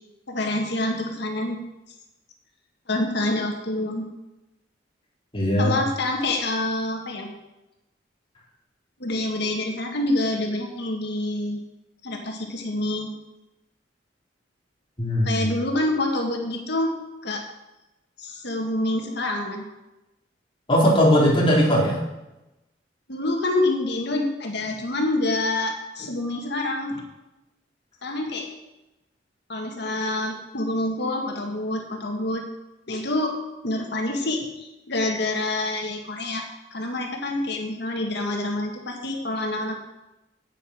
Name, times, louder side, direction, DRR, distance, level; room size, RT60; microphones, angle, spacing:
voice 1, 0.3-1.6 2.9-4.0 5.6-7.3 9.0-11.6 12.0-13.1 15.2-17.0 17.2-17.4 18.2-19.7 23.1-27.0 28.0-28.5 29.5-32.4 32.9-33.3 33.6-36.4 36.7-39.7, left 2 dB, 65° left, 2 dB, 1.8 m, -27 dB
voice 2, 5.3-5.8 15.0-15.5 20.7-22.0, equal, 30° left, -3 dB, 3.2 m, -19 dB
9.2 x 8.8 x 6.2 m, 0.98 s
head